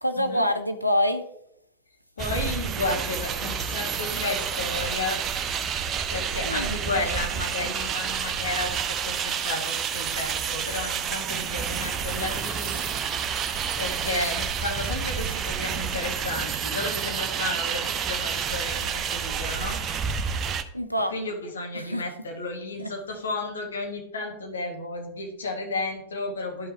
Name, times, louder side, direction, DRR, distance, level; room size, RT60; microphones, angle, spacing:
voice 1, 0.0-1.2 6.4-6.8 12.7-12.9 20.7-21.1 21.7-22.0 22.8-22.9, equal, 90° left, 6 dB, 0.7 m, -26 dB
voice 2, 2.2-5.2 6.1-12.7 13.8-19.8 21.1-26.7, left 3 dB, 70° left, 2 dB, 1.6 m, -32 dB
sound 1, 2.2-20.6, right 7 dB, 30° right, 0.6 m, -29 dB
11.0 x 5.6 x 2.8 m, 0.74 s
figure-of-eight pair, 90°, 0 cm